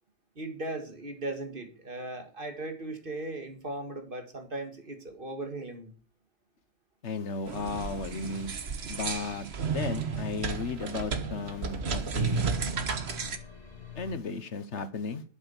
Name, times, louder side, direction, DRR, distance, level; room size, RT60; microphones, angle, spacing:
voice 1, 0.4-5.9, right 2 dB, 50° right, 6 dB, 2.2 m, -38 dB
voice 2, 7.0-8.5 8.9-12.5 13.9-15.2, left 4 dB, 85° left, 12 dB, 1.5 m, -35 dB
sound 1, 7.5-13.4, right 5 dB, 65° right, 1.5 m, -32 dB
sound 2, 10.3-14.2, left 7 dB, 35° left, 2.9 m, -50 dB
12.0 x 7.1 x 7.1 m, 0.40 s
omnidirectional pair, 1.2 m